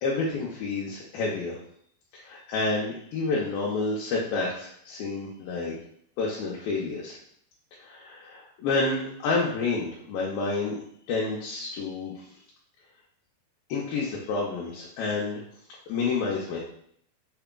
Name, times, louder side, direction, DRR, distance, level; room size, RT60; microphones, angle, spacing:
voice 1, 0.0-1.6 2.1-5.8 6.2-7.2 7.8-12.3 13.7-15.4 15.9-16.6, left 3 dB, 75° left, -4 dB, 2.2 m, -29 dB
6.8 x 3.3 x 2.2 m, 0.67 s
omnidirectional pair, 4.6 m